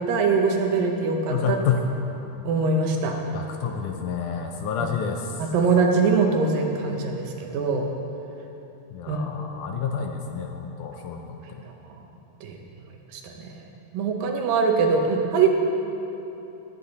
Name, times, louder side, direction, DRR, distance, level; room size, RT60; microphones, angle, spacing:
voice 1, 0.0-1.6 2.4-3.2 4.8-4.9 5.4-7.9 9.1-9.2 11.6-12.0 12.4-12.6 13.1-13.6 13.9-15.5, right 4 dB, 80° right, 2 dB, 2.7 m, -23 dB
voice 2, 1.3-1.9 3.3-5.4 8.9-11.4, left 7 dB, 75° left, 3 dB, 2.0 m, -29 dB
19.5 x 8.6 x 4.1 m, 3.0 s
omnidirectional pair, 4.0 m